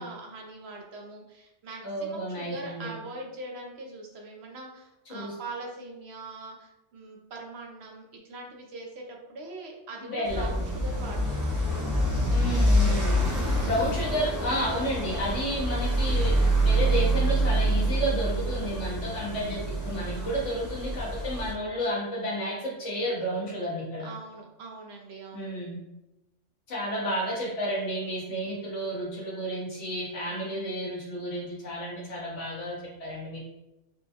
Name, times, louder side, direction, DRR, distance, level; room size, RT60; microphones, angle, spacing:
voice 1, 0.0-12.0 20.1-20.5 24.0-25.5 30.3-30.7, right 2 dB, 65° right, 0 dB, 0.9 m, -42 dB
voice 2, 1.8-2.9 5.1-5.3 10.1-10.5 12.3-13.4 13.6-24.1 25.3-25.8 26.7-33.4, equal, 75° left, -5 dB, 1.5 m, -31 dB
sound 1, 10.2-21.5, right 1 dB, 30° right, 0.4 m, -26 dB
4.5 x 2.2 x 2.8 m, 0.95 s
omnidirectional pair, 1.3 m